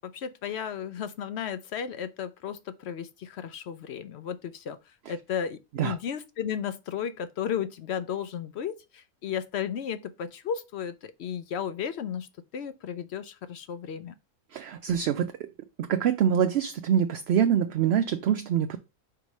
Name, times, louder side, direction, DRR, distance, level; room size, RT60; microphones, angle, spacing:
voice 1, 0.0-12.3 12.5-14.1, left 8 dB, 65° left, 0.7 m, -34 dB
voice 2, 14.5-15.5 15.8-18.8, right 8 dB, 65° right, 0.6 m, -25 dB
4.8 x 4.5 x 5.3 m
omnidirectional pair, 1.5 m